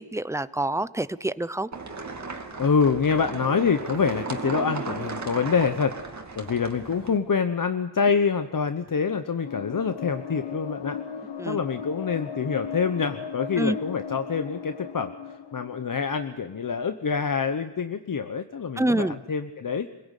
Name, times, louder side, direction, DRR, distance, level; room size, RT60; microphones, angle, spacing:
voice 1, 0.0-1.7 11.4-11.6 13.6-13.8 18.8-19.2, right 1 dB, 5° right, 16 dB, 0.7 m, -26 dB
sound 1, 1.7-7.2, right 4 dB, 40° right, 2.5 m, -35 dB
voice 2, 2.6-11.0 11.4-19.9, left 5 dB, 50° left, 9 dB, 1.0 m, -26 dB
sound 2, 9.4-17.5, left 7 dB, 85° left, 1.0 m, -37 dB
26.0 x 16.5 x 8.3 m, 1.1 s
cardioid pair, 65°, 42 cm